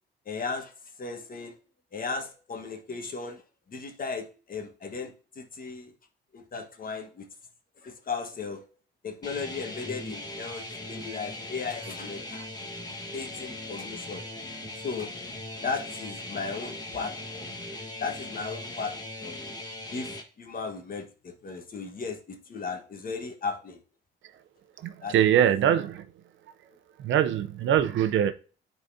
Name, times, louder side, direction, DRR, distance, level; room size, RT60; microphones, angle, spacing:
voice 1, 0.2-0.7 1.0-1.6 1.9-3.4 3.7-5.9 6.3-7.3 7.8-8.6 9.0-12.5 13.1-14.2 14.8-15.1 15.6-17.5 18.0-18.9 19.2-19.5 19.9-23.8 25.0-25.1, left 4 dB, 45° left, 1.4 m, -36 dB
sound 1, 9.2-20.2, left 1 dB, 20° left, 1.4 m, -39 dB
voice 2, 24.8-26.1 27.0-28.3, right 10 dB, 75° right, 0.7 m, -23 dB
9.7 x 4.1 x 2.7 m
cardioid pair, 90°, 20 cm